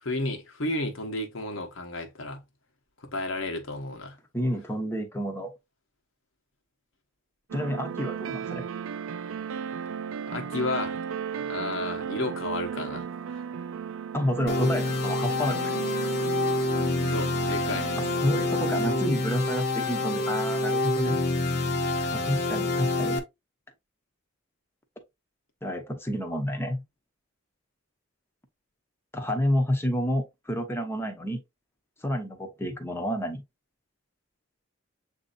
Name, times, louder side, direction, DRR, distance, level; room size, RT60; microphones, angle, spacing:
voice 1, 0.0-2.4 3.1-4.2 10.3-11.0 11.3-13.4 17.1-17.9, left 2 dB, 80° left, 1.1 m, -32 dB
voice 2, 4.3-5.5 7.5-8.7 14.1-15.7 18.2-21.2 22.1-23.2 25.6-26.8 29.1-31.4 32.0-33.4, equal, 10° left, 0.8 m, -29 dB
sound 1, 7.5-21.1, right 7 dB, 90° right, 0.4 m, -36 dB
sound 2, 14.5-23.2, left 2 dB, 50° left, 0.9 m, -27 dB
7.4 x 2.7 x 2.5 m
head